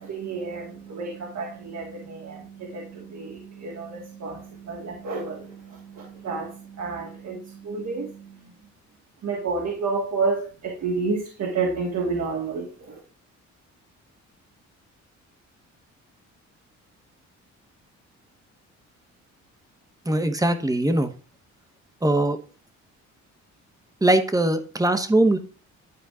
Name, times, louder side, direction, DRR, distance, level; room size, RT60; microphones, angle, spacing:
voice 1, 0.0-8.4 9.2-13.0, right 4 dB, 60° right, -2 dB, 3.0 m, -30 dB
voice 2, 20.1-21.1 22.0-22.4 24.0-25.4, right 1 dB, 10° right, 8 dB, 1.4 m, -21 dB
12.5 x 4.4 x 3.8 m, 0.38 s
cardioid pair, 90°, 30 cm